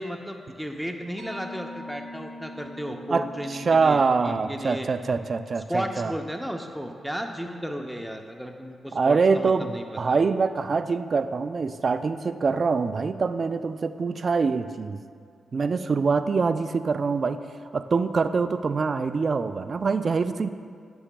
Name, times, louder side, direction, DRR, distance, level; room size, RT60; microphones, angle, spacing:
voice 1, 0.0-4.9 5.7-10.2, equal, ahead, 3 dB, 0.6 m, -34 dB
Mallet percussion, 1.2-8.2, left 2 dB, 80° left, 1.7 m, -45 dB
voice 2, 3.1-6.1 8.9-15.0 15.5-17.4 17.7-20.5, right 4 dB, 50° right, 10 dB, 0.4 m, -24 dB
13.5 x 6.9 x 2.3 m, 2.3 s
cardioid pair, 75°, 0 cm